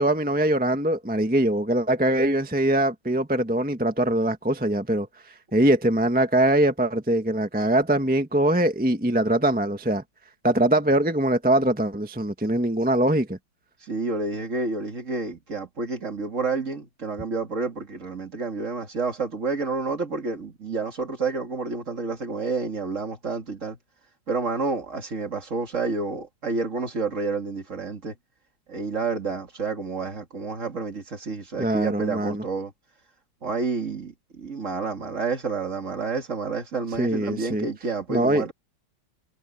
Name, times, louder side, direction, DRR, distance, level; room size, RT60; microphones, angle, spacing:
voice 1, 0.0-5.1 5.5-10.0 10.4-13.4 31.6-32.4 37.0-37.7 38.1-38.4, right 1 dB, 5° right, 0.9 m, -22 dB
voice 2, 13.8-23.8 24.3-28.2 28.7-32.7 33.4-38.5, right 4 dB, 35° right, 2.4 m, -29 dB
omnidirectional pair, 2.3 m